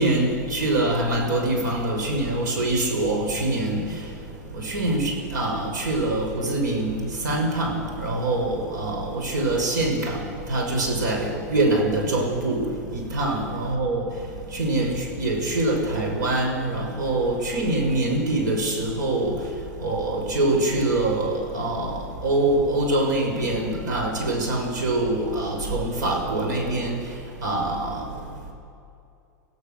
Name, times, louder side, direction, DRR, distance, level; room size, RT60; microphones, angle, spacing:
voice 1, 0.0-3.8 4.5-14.0 14.5-19.4 19.8-27.0 27.4-28.0, right 2 dB, 80° right, 1 dB, 6.0 m, -24 dB
25.5 x 16.0 x 6.9 m, 2.5 s
hypercardioid pair, 100°, 10 cm